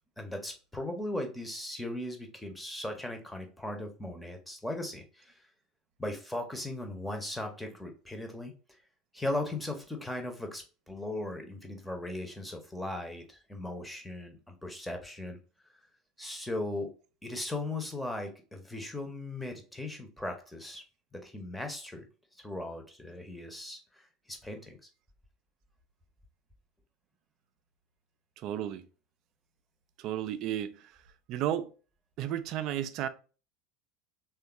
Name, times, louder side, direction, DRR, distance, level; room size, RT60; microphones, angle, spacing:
voice 1, 0.2-5.3 6.0-8.5 9.1-15.4 16.2-16.9 17.2-20.8 21.1-22.0 22.4-24.0 24.3-24.8, left 1 dB, 5° left, 0.7 m, -38 dB
voice 2, 28.4-28.9 30.0-30.9 31.3-31.7 32.2-33.1, right 11 dB, 45° right, 0.3 m, -33 dB
3.4 x 2.4 x 2.9 m
figure-of-eight pair, 70°, 0 cm